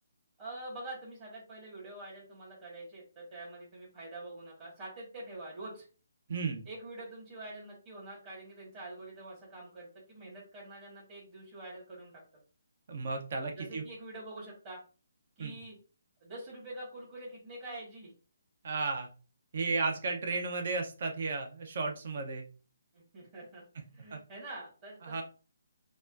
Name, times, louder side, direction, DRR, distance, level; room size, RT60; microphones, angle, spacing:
voice 1, 0.4-5.8 6.6-12.1 13.5-14.8 15.4-15.7 16.2-18.1 22.9-25.2, right 2 dB, 30° right, -7 dB, 1.8 m, -46 dB
voice 2, 6.3-6.6 12.9-13.8 15.4-15.5 18.6-19.1 19.5-22.4 24.1-24.2 25.0-25.2, right 3 dB, 55° right, 3 dB, 0.7 m, -34 dB
5.1 x 2.3 x 2.5 m, 0.35 s
hypercardioid pair, 150°, 0 cm